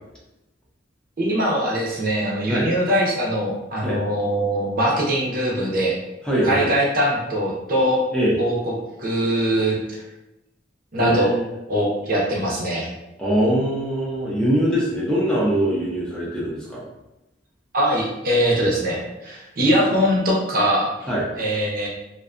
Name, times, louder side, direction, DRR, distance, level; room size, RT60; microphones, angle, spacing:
voice 1, 1.2-6.0 6.4-8.0 8.4-8.7 9.0-10.0 10.9-11.3 11.7-12.9 17.7-21.1 21.3-21.9, equal, 50° right, -3 dB, 0.6 m, -22 dB
voice 2, 6.2-6.7 8.1-8.4 11.0-11.4 13.2-16.8 21.1-21.2, equal, 5° left, -6 dB, 0.4 m, -22 dB
2.5 x 2.2 x 2.4 m, 0.95 s
head